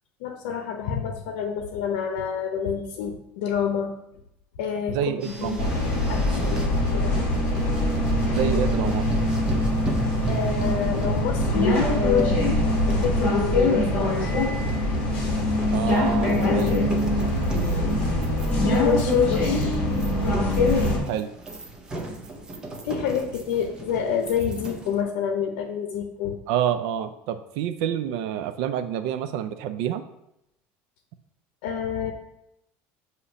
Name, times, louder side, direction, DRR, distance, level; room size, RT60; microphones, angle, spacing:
voice 1, 0.2-3.9 4.6-5.6 6.1-7.1 10.3-12.4 12.9-14.4 16.1-16.9 18.6-19.8 22.8-26.4 31.6-32.1, left 7 dB, 85° left, 4 dB, 0.7 m, -28 dB
voice 2, 4.9-5.7 8.3-9.1 15.7-16.8 21.1-21.3 26.5-30.0, right 10 dB, 60° right, 10 dB, 0.4 m, -28 dB
sound 1, 5.2-25.0, right 2 dB, 15° right, 0.6 m, -37 dB
sound 2, 5.6-21.0, left 1 dB, 25° left, 1.4 m, -23 dB
7.1 x 2.8 x 4.9 m, 0.81 s
cardioid pair, 180°, 5 cm